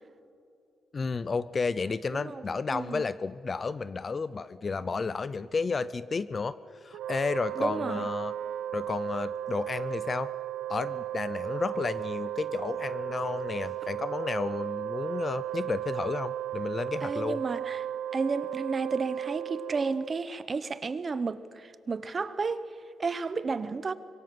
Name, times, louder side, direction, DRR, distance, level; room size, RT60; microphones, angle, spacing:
voice 1, 0.9-6.6 6.8-8.3 8.7-10.3 10.7-17.4, left 4 dB, 25° left, 0.5 m, -32 dB
voice 2, 2.1-2.4 2.7-3.1 7.5-8.1 17.0-23.9, right 4 dB, 25° right, 0.8 m, -32 dB
Wind instrument woodwind instrument, 6.9-20.3, right 11 dB, 90° right, 0.6 m, -35 dB
25.5 x 22.5 x 7.6 m
wide cardioid pair, 175°, 0 cm